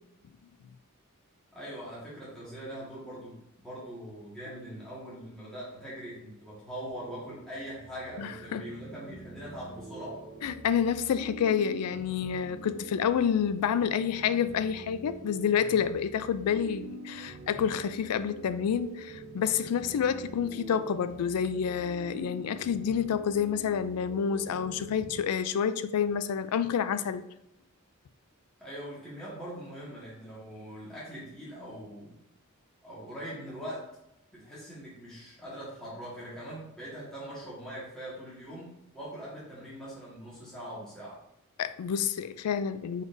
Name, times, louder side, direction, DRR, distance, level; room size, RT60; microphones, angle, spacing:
voice 1, 1.5-10.2 28.6-32.2 32.8-34.0 34.3-41.2, equal, 5° left, 1.5 m, -42 dB
sound 1, 7.0-25.2, right 3 dB, 45° right, 1.1 m, -46 dB
voice 2, 8.2-8.6 10.4-27.2 41.6-43.0, left 7 dB, 85° left, 0.3 m, -29 dB
4.8 x 4.0 x 2.6 m
head